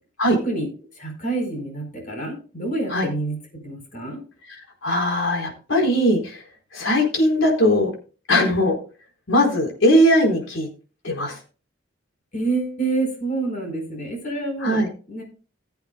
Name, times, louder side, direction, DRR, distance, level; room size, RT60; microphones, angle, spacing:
voice 1, 1.0-3.4 3.6-4.2 12.3-14.8 15.1-15.2, right 3 dB, 40° left, 2 dB, 4.6 m, -27 dB
voice 2, 4.5-6.4 6.7-7.9 8.3-8.8 9.3-10.7 11.0-11.4 14.6-14.9, equal, 80° left, 1 dB, 4.3 m, -19 dB
19.5 x 8.1 x 2.3 m, 0.37 s
head